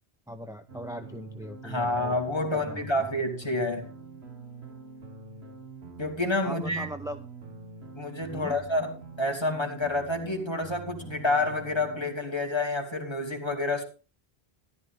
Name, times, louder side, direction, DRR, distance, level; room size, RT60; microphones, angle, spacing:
voice 1, 0.3-2.1 2.7-2.9 6.4-7.3 8.3-8.5, equal, 5° right, 7 dB, 0.5 m, -39 dB
sound 1, 0.7-12.2, right 4 dB, 75° right, 2.0 m, -45 dB
voice 2, 1.6-3.9 6.0-6.9 8.0-13.8, left 2 dB, 25° left, 3 dB, 2.5 m, -29 dB
14.0 x 11.0 x 3.6 m, 0.33 s
omnidirectional pair, 1.1 m